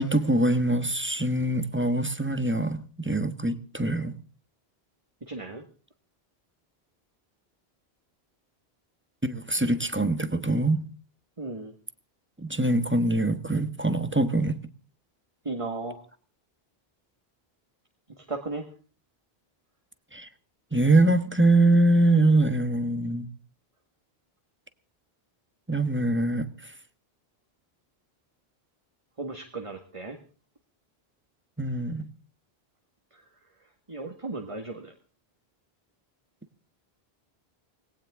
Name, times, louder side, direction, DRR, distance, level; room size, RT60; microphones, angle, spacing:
voice 1, 0.0-4.1 9.2-10.8 12.4-14.6 20.1-20.3 20.7-23.3 25.7-26.7 31.6-32.1, right 2 dB, 10° right, 1.2 m, -23 dB
voice 2, 5.3-5.6 11.4-11.7 15.4-16.0 18.2-18.7 29.2-30.2 33.1-33.2 33.9-34.9, right 3 dB, 30° right, 1.8 m, -35 dB
19.5 x 17.5 x 3.7 m
omnidirectional pair, 1.1 m